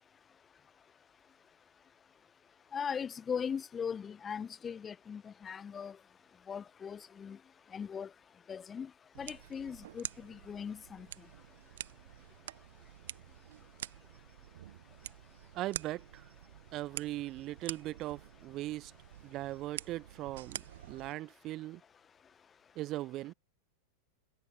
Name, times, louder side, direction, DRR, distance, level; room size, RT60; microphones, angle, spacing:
voice 1, 2.7-6.0 6.5-7.4 7.7-8.1 8.5-8.9 9.2-11.1, left 7 dB, 20° left, 1.4 m, -39 dB
sound 1, 9.1-21.1, right 12 dB, 60° right, 1.0 m, -47 dB
voice 2, 15.5-16.3 16.7-18.9 19.2-21.8 22.7-23.3, right 16 dB, 35° right, 1.2 m, -39 dB
figure-of-eight pair, 90°, 0 cm